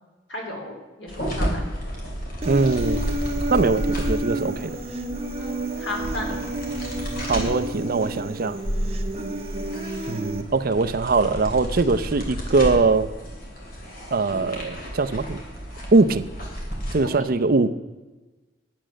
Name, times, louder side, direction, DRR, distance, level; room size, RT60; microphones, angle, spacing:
voice 1, 0.3-1.6 5.4-6.4 9.1-9.3 17.0-17.3, left 1 dB, 85° left, 0 dB, 3.2 m, -35 dB
sound 1, 1.1-16.9, equal, 50° left, 3.1 m, -32 dB
Human voice, 2.4-10.4, right 1 dB, 35° right, 0.9 m, -31 dB
voice 2, 2.4-3.0 3.5-4.8 7.3-8.6 10.1-13.1 14.1-15.4 15.9-16.2 16.9-17.7, right 3 dB, 50° right, 12 dB, 0.6 m, -21 dB
10.5 x 9.0 x 6.4 m, 1.2 s
head